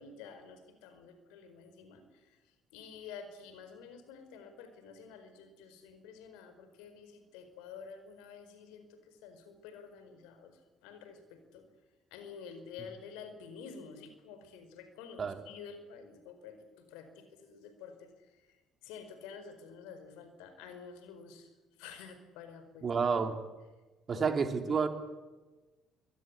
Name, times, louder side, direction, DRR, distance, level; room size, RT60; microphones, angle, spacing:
voice 1, 0.0-2.4 2.7-11.7 12.1-18.5 18.8-21.5 21.8-23.2 24.1-24.4 24.7-24.9, left 6 dB, 70° left, 9 dB, 4.6 m, -50 dB
voice 2, 22.8-23.4 24.1-24.9, right 5 dB, 40° right, 7 dB, 3.4 m, -29 dB
25.5 x 23.5 x 8.4 m, 1.2 s
hypercardioid pair, 55°, 0 cm